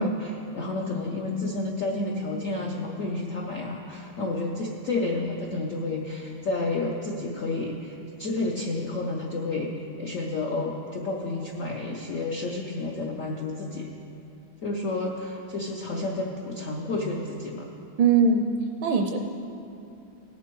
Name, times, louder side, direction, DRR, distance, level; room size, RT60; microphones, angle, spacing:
voice 1, 0.0-9.7 10.0-13.9 14.6-17.7, left 2 dB, 80° left, -1 dB, 0.7 m, -30 dB
voice 2, 18.0-18.5 18.8-19.2, right 5 dB, 75° right, 4 dB, 1.2 m, -21 dB
17.5 x 7.0 x 4.6 m, 2.9 s
omnidirectional pair, 2.4 m